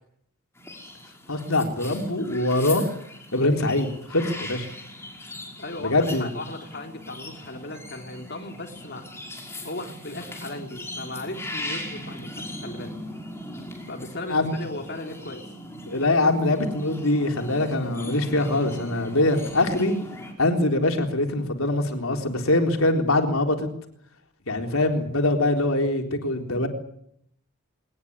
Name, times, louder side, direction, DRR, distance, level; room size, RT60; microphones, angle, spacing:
sound 1, 0.6-20.3, left 1 dB, 10° left, 5.8 m, -39 dB
voice 1, 1.3-2.8 3.3-4.7 5.8-6.3 14.3-14.5 15.9-20.0 20.4-23.7 24.5-26.7, left 2 dB, 80° left, 4 dB, 3.9 m, -23 dB
voice 2, 5.6-9.1 9.6-12.9 13.9-15.4, left 2 dB, 50° left, 2 dB, 3.5 m, -37 dB
22.0 x 20.0 x 9.7 m, 0.70 s
head